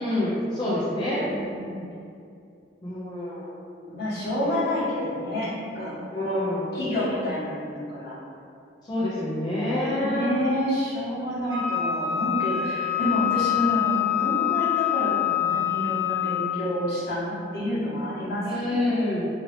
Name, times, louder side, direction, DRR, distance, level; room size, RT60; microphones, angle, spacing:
voice 1, 0.0-1.2 2.8-3.5 6.1-6.7 8.9-10.3 18.4-19.3, left 1 dB, 25° left, -10 dB, 0.5 m, -27 dB
voice 2, 1.2-1.8 3.9-6.4 6.7-8.1 9.9-18.8, left 1 dB, 60° left, -10 dB, 1.3 m, -29 dB
Wind instrument woodwind instrument, 11.5-16.7, left 12 dB, 25° right, 0.9 m, -25 dB
2.8 x 2.7 x 3.1 m, 2.5 s
head